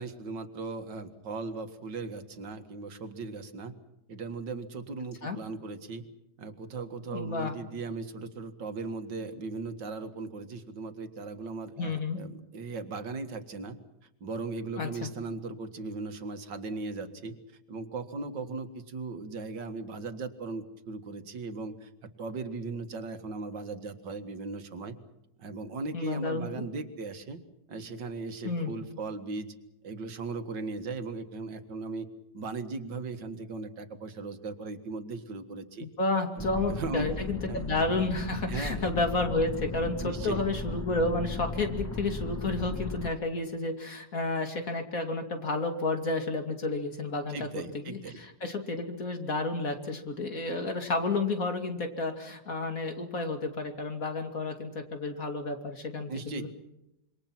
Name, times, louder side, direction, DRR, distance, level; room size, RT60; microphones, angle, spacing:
voice 1, 0.0-3.7 4.1-6.0 6.4-13.8 14.2-17.4 17.7-25.0 25.4-27.4 27.7-29.5 29.8-32.1 32.3-35.9 36.4-37.2 37.5-37.7 38.5-38.9 40.0-40.4 47.3-48.2 56.1-56.5, right 3 dB, 90° right, 8 dB, 2.4 m, -38 dB
voice 2, 7.1-7.5 11.8-12.2 14.8-15.1 25.9-26.5 28.4-28.7 35.8-56.5, left 3 dB, 50° left, 5 dB, 3.1 m, -31 dB
sound 1, 36.4-43.1, left 2 dB, 10° left, 0.9 m, -36 dB
27.0 x 24.0 x 6.0 m, 0.87 s
omnidirectional pair, 1.9 m